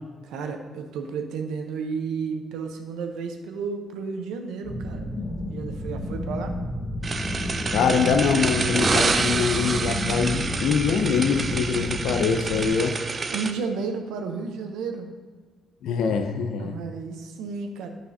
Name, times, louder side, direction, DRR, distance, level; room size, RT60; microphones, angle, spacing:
voice 1, 0.2-5.1 5.5-6.6 13.3-15.1 16.6-17.9, right 5 dB, 90° right, 5 dB, 0.7 m, -32 dB
sound 1, 4.6-12.7, left 1 dB, 35° left, 1.5 m, -31 dB
sound 2, 7.0-13.5, right 4 dB, 35° right, 0.5 m, -27 dB
voice 2, 7.7-12.9 15.8-16.7, left 6 dB, 80° left, 6 dB, 0.6 m, -24 dB
9.2 x 6.0 x 2.8 m, 1.5 s
cardioid pair, 90°, 0 cm